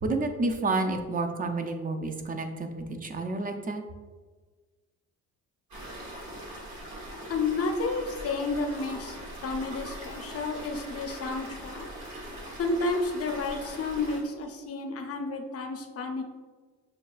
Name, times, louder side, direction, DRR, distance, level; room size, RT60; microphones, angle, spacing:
voice 1, 0.0-3.8, right 2 dB, 30° right, 6 dB, 0.4 m, -30 dB
sound 1, 5.7-14.2, right 1 dB, 65° right, 1.4 m, -41 dB
voice 2, 7.3-9.2 9.4-11.9 12.6-16.2, left 3 dB, 50° left, 5 dB, 0.6 m, -31 dB
6.4 x 2.3 x 2.3 m, 1.4 s
cardioid pair, 90°, 30 cm